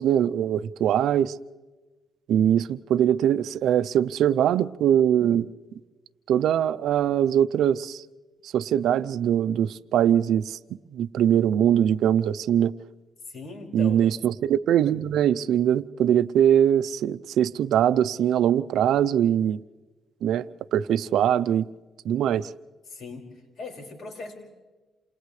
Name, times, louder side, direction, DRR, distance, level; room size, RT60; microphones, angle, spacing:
voice 1, 0.0-1.3 2.3-5.5 6.3-8.0 8.4-10.6 10.9-12.7 13.7-19.6 20.2-20.4 20.7-21.7 22.0-22.5, right 10 dB, 75° right, 0.6 m, -22 dB
voice 2, 13.3-14.1 22.9-24.3, left 4 dB, 60° left, 5.4 m, -39 dB
28.5 x 28.0 x 3.3 m
cardioid pair, 90°, 0 cm